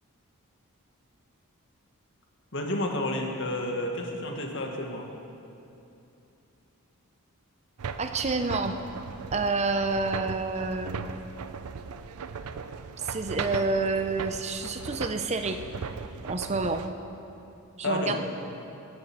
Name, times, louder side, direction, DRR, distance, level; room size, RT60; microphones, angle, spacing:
voice 1, 2.5-5.1 17.8-18.2, left 1 dB, 55° left, 2 dB, 1.6 m, -30 dB
sound 1, 7.8-16.9, right 5 dB, 80° right, 0.5 m, -38 dB
voice 2, 8.0-8.7 9.3-11.0 13.0-15.6 16.2-16.8 17.8-18.2, right 3 dB, 30° right, 7 dB, 0.6 m, -28 dB
17.5 x 7.9 x 6.0 m, 2.8 s
head